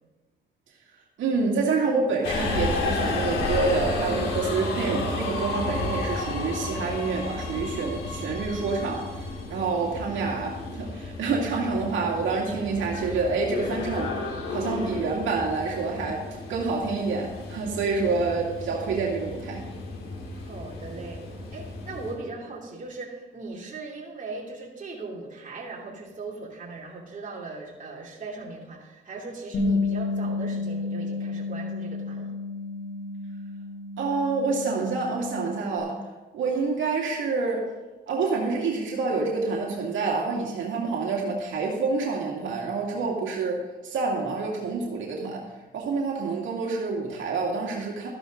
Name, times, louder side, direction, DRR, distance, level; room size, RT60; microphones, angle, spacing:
voice 1, 1.2-19.6 34.0-36.0 36.3-37.7 38.1-45.4 45.7-48.1, right 4 dB, 75° right, -2 dB, 2.3 m, -27 dB
Subway metro underground, 2.2-22.1, left 2 dB, 90° left, 3.1 m, -32 dB
voice 2, 20.4-32.3, right 3 dB, 40° right, -2 dB, 3.0 m, -39 dB
Bass guitar, 29.5-35.8, left 3 dB, 70° left, 4.2 m, -31 dB
13.5 x 11.0 x 3.9 m, 1.2 s
cardioid pair, 90°, 20 cm